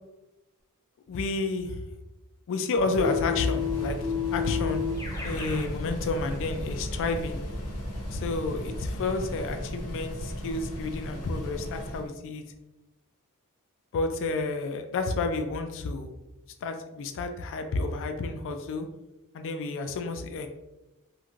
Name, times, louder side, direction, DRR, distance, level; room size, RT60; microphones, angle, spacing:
voice 1, 1.1-1.8 2.5-4.8 5.2-7.4 8.1-12.4 13.9-16.1 16.6-18.9 19.3-20.5, left 3 dB, 60° left, 6 dB, 0.3 m, -30 dB
sound 1, 2.7-12.1, equal, 90° left, 0.8 m, -36 dB
Keyboard (musical), 3.0-5.7, left 8 dB, 15° left, 0.6 m, -31 dB
3.0 x 2.5 x 2.4 m, 1.0 s
head